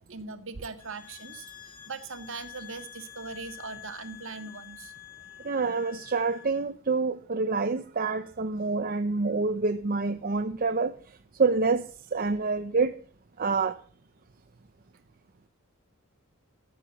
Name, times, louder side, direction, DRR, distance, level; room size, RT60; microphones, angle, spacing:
voice 1, 0.0-4.9, right 4 dB, 60° right, 1.7 m, -40 dB
sound 1, 0.8-6.6, left 12 dB, 80° left, 3.1 m, -48 dB
voice 2, 5.4-10.9 11.4-11.8 12.1-12.9 13.4-13.8, right 4 dB, 40° right, 0.7 m, -27 dB
15.0 x 10.0 x 7.1 m
head